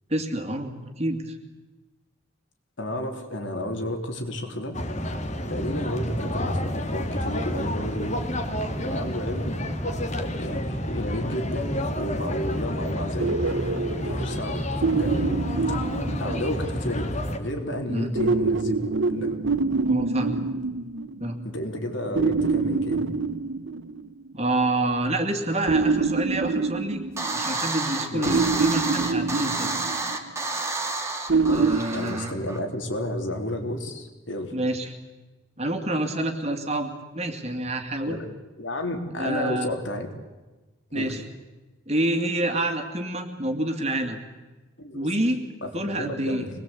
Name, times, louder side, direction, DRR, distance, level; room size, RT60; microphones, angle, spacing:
voice 1, 0.1-1.4 17.9-18.1 19.8-20.3 21.2-21.4 24.3-27.0 27.3-29.8 31.5-32.3 34.5-34.9 35.6-38.2 39.2-39.8 40.9-41.2 41.9-44.2 44.9-45.4 45.7-46.4, right 1 dB, 35° right, 6 dB, 2.5 m, -27 dB
voice 2, 2.8-4.8 5.5-8.2 8.8-9.7 10.2-13.4 14.0-14.6 14.9-15.8 16.2-18.8 19.1-19.4 21.4-23.1 28.1-28.4 31.4-34.6 38.1-38.3 38.6-40.1 40.9-41.2 44.8-45.1 45.6-46.5, left 1 dB, 70° left, 4 dB, 3.6 m, -32 dB
sound 1, 4.7-17.4, left 1 dB, 35° left, 2.3 m, -29 dB
sound 2, 13.2-16.9 18.2-21.5 22.2-24.3 25.7-27.8 28.3-30.3 31.3-31.8, right 4 dB, 70° right, 0.9 m, -26 dB
sound 3, 27.2-32.6, right 3 dB, 15° right, 2.4 m, -30 dB
25.5 x 20.5 x 8.6 m, 1.2 s
head